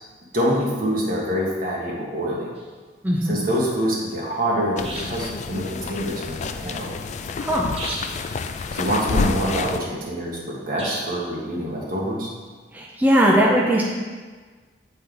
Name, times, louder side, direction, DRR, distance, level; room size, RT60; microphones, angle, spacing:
voice 1, 0.3-2.5 3.3-6.9 8.7-12.3, equal, 55° right, -4 dB, 1.5 m, -25 dB
sound 1, 2.5-2.7 4.8-5.3 7.8-8.3 10.8-11.3, right 2 dB, 35° right, 0.9 m, -34 dB
voice 2, 3.0-3.4 7.4-7.7 12.7-13.8, equal, 10° right, -3 dB, 0.6 m, -19 dB
sound 2, 4.8-9.8, left 4 dB, 40° left, 0.3 m, -28 dB
8.2 x 4.2 x 3.8 m, 1.4 s
head